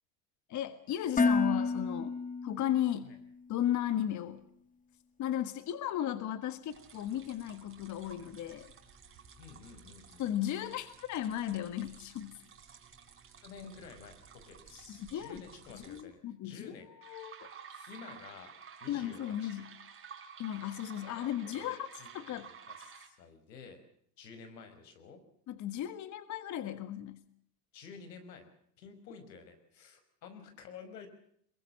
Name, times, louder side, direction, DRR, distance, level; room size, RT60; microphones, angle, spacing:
voice 1, 0.5-2.1 2.4-3.1 3.5-4.4 5.2-8.7 10.2-12.4 14.9-15.5 15.7-16.7 17.0-17.9 18.9-19.7 20.4-22.5 25.5-27.2, left 11 dB, 35° left, 12 dB, 1.6 m, -35 dB
Dishes pots and pans, 1.2-3.2, left 4 dB, 15° left, 1.3 m, -30 dB
sound 1, 6.7-16.0 17.0-23.1, right 7 dB, 25° right, 4.0 m, -53 dB
voice 2, 9.4-10.2 13.4-16.9 17.9-18.5 18.8-19.7 21.0-23.8 24.2-25.2 27.7-28.5 28.8-31.1, left 5 dB, 85° left, 8 dB, 5.6 m, -51 dB
22.5 x 22.0 x 7.6 m, 0.66 s
hypercardioid pair, 110°, 49 cm